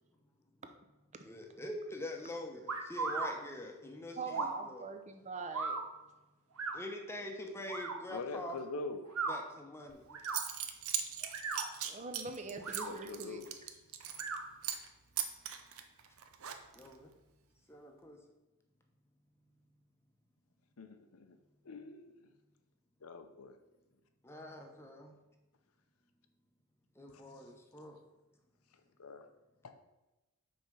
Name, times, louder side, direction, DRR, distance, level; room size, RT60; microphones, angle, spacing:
voice 1, 1.2-4.9 6.7-8.6 9.3-10.2 16.7-17.1 17.7-18.2 24.2-25.1 27.0-28.0, left 1 dB, 10° left, 2 dB, 0.8 m, -45 dB
sound 1, 2.7-3.3 4.3-4.6 5.5-5.8 6.6-6.8 7.7-8.0 9.0-9.4 10.1-10.4 11.2-11.7 12.5-12.9 14.1-14.4, right 4 dB, 85° right, 1.0 m, -36 dB
voice 2, 4.2-5.8 11.9-13.4, right 4 dB, 30° right, 7 dB, 0.6 m, -43 dB
voice 3, 8.1-9.0 12.8-13.5 20.8-21.4 21.6-22.1 23.0-23.6 27.1-27.2 29.0-29.3, left 3 dB, 75° left, 7 dB, 0.7 m, -43 dB
Zipper (clothing) / Coin (dropping), 9.9-10.0 10.2-14.4 14.6-14.9 15.2-16.9, right 9 dB, 70° right, 0.7 m, -39 dB
5.5 x 4.3 x 6.2 m, 1.1 s
head